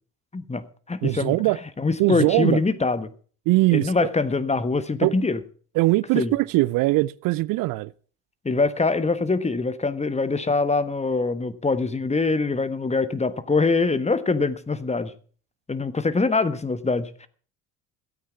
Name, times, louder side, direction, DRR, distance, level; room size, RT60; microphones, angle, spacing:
voice 1, 0.3-1.4 1.8-3.1 3.7-5.4 6.1-6.3 8.4-15.1 15.7-17.3, left 3 dB, 20° left, 1.3 m, -24 dB
voice 2, 1.0-1.6 2.0-2.6 3.5-3.9 5.0-5.1 5.8-7.9, right 20 dB, 65° right, 0.5 m, -21 dB
13.5 x 8.6 x 7.1 m
hypercardioid pair, 65°, 37 cm